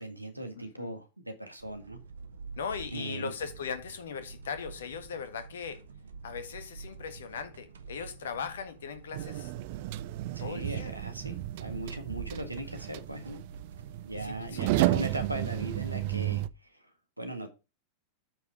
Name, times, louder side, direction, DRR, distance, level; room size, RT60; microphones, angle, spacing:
voice 1, 0.0-2.0 2.9-3.3 10.3-13.4 14.0-16.8 17.2-17.5, right 1 dB, 85° right, 1.7 m, -38 dB
voice 2, 0.6-0.9 2.6-5.8 6.2-9.5 10.4-10.9 14.2-14.8, left 6 dB, 65° left, 1.6 m, -39 dB
sound 1, 1.6-16.5, right 5 dB, 65° right, 0.9 m, -48 dB
sound 2, 9.1-16.5, right 16 dB, 50° right, 0.4 m, -33 dB
8.9 x 5.0 x 5.0 m
figure-of-eight pair, 90°, 0 cm